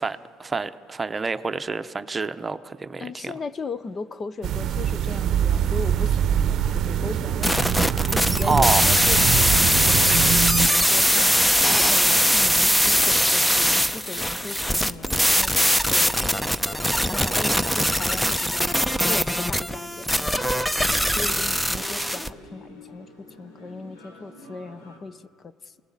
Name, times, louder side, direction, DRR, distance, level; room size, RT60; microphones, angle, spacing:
voice 1, 0.0-3.3 8.4-8.9, right 4 dB, 25° right, 11 dB, 0.9 m, -27 dB
voice 2, 3.0-7.7 8.1-11.3 11.9-16.8 17.1-18.7 19.1-20.7 21.1-25.7, left 3 dB, 35° left, 15 dB, 0.8 m, -37 dB
sound 1, 4.4-10.7, right 9 dB, 55° right, 0.7 m, -24 dB
sound 2, 7.4-22.3, equal, 5° left, 0.8 m, -21 dB
sound 3, 13.9-25.0, left 1 dB, 90° left, 4.9 m, -47 dB
28.0 x 19.5 x 7.4 m, 2.2 s
supercardioid pair, 80°, 0 cm